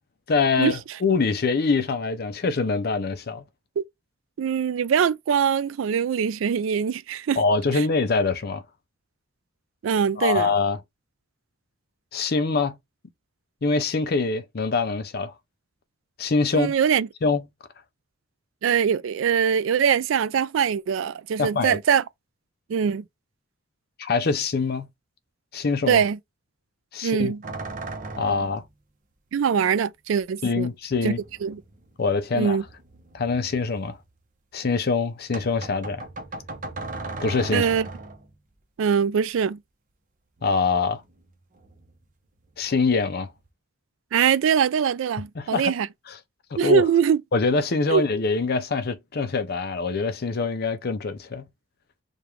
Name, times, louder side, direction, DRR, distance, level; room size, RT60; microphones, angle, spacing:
voice 1, 0.3-3.4 7.4-8.6 10.2-10.8 12.1-12.8 13.6-15.3 16.2-16.7 17.2-17.4 21.4-21.8 24.0-24.9 25.5-26.0 26.9-27.3 28.2-28.6 30.4-31.2 32.0-32.6 33.1-34.0 34.5-36.0 37.2-37.7 40.4-41.0 42.6-43.3 45.4-45.7 46.1-46.2 46.5-46.8 47.3-51.4, left 4 dB, 50° left, 0.5 m, -24 dB
voice 2, 4.4-7.4 9.8-10.5 16.5-17.1 18.6-22.0 22.7-23.0 25.9-26.2 27.0-27.4 29.3-30.7 31.0-31.1 31.4-31.6 32.3-32.6 37.5-37.9 38.8-39.6 44.1-45.9 46.6-47.2 47.9-48.0, right 7 dB, 70° right, 0.3 m, -22 dB
sound 1, 27.4-28.7 30.2-30.3 31.0-32.2 32.5-34.1 35.3-38.3 40.4-41.3 41.5-42.1 42.5-43.5, right 2 dB, 40° right, 0.8 m, -38 dB
5.0 x 2.4 x 3.0 m
head